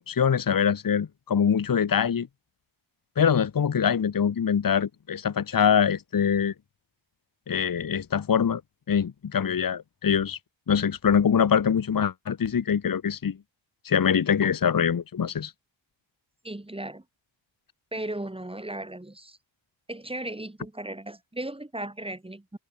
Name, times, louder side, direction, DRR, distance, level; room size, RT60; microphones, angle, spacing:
voice 1, 0.1-2.3 3.2-6.5 7.5-8.6 8.9-10.4 10.7-13.4 13.8-15.5, left 7 dB, 45° left, 1.1 m, -24 dB
voice 2, 16.4-17.0 17.9-19.4 19.9-22.6, right 1 dB, 10° right, 2.0 m, -36 dB
wide cardioid pair, 120°, 47 cm